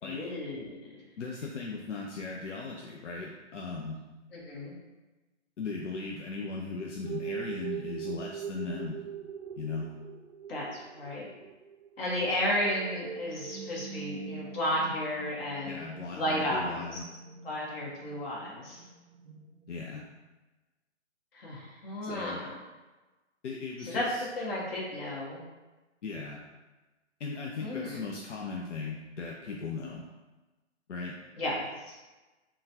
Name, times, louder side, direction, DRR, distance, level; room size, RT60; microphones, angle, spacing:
voice 1, 0.0-1.0 4.3-4.7 10.5-11.3 12.0-15.8 16.1-16.9 17.4-18.8 21.3-22.6 23.9-24.0 24.4-25.4 27.6-28.0 31.4-31.9, left 1 dB, 55° left, -5 dB, 1.3 m, -33 dB
voice 2, 1.2-4.0 5.6-9.0 9.6-9.9 15.6-17.1 19.7-20.0 22.0-22.4 23.4-24.2 26.0-26.4 27.2-30.0 30.9-31.2, left 4 dB, 80° left, -1 dB, 0.5 m, -37 dB
sound 1, 7.0-20.2, right 7 dB, 70° right, 0.5 m, -43 dB
3.7 x 2.3 x 2.7 m, 1.1 s
figure-of-eight pair, 135°, 36 cm